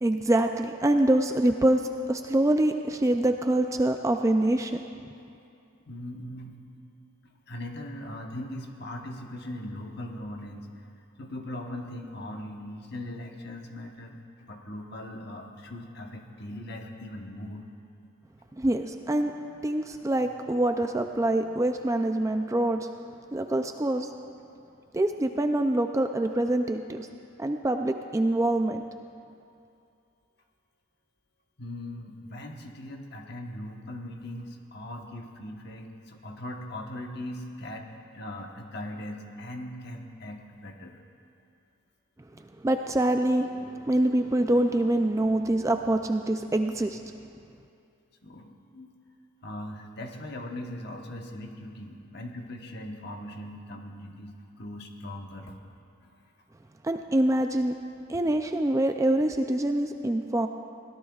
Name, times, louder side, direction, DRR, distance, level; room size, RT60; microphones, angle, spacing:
voice 1, 0.0-1.8 2.1-4.8 18.6-19.3 19.6-22.9 23.3-24.1 24.9-27.1 27.4-28.8 42.6-47.0 56.8-57.7 58.1-60.5, right 1 dB, 15° right, 6 dB, 0.3 m, -25 dB
voice 2, 5.8-6.6 7.5-10.7 11.2-17.6 31.6-41.0 48.2-48.9 49.4-55.6, left 1 dB, 50° left, 2 dB, 1.2 m, -40 dB
23.0 x 17.5 x 2.4 m, 2.6 s
head